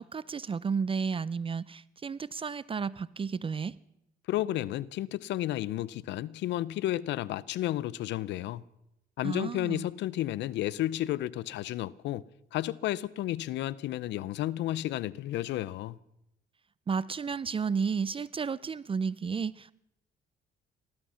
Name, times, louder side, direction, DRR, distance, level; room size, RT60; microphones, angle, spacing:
voice 1, 0.0-3.8 9.2-9.9 16.9-19.7, right 5 dB, 30° right, 0.5 m, -32 dB
voice 2, 4.3-8.6 9.2-12.2 12.5-16.0, left 14 dB, 75° left, 0.6 m, -32 dB
19.0 x 13.0 x 5.7 m
cardioid pair, 80°, 19 cm